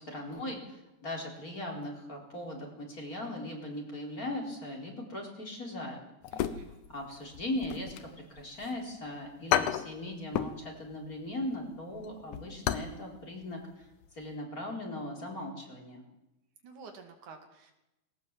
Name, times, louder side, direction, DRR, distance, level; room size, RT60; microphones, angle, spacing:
voice 1, 0.0-6.0 6.3-6.6 6.9-13.9 14.1-16.0, left 1 dB, 30° left, 0 dB, 4.6 m, -39 dB
sound 1, 6.2-7.0 7.3-8.7 9.1-9.2 9.5-10.6 10.9-11.2 11.5-13.0 13.2-13.3 13.8-14.1 14.3-14.4, left 10 dB, 85° left, 2.5 m, -32 dB
voice 2, 6.3-6.8 16.6-17.7, right 5 dB, 85° right, 5 dB, 3.9 m, -50 dB
20.5 x 18.5 x 7.6 m, 0.92 s
omnidirectional pair, 3.4 m